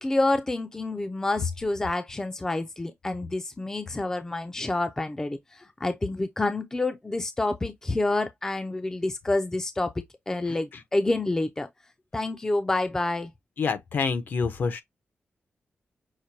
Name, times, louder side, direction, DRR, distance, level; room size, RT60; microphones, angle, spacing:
voice 1, 0.0-11.7 12.1-13.3, left 2 dB, 15° left, 0.5 m, -28 dB
voice 2, 13.6-14.8, left 5 dB, 55° left, 0.9 m, -27 dB
6.3 x 2.2 x 2.7 m
wide cardioid pair, 175°, 4 cm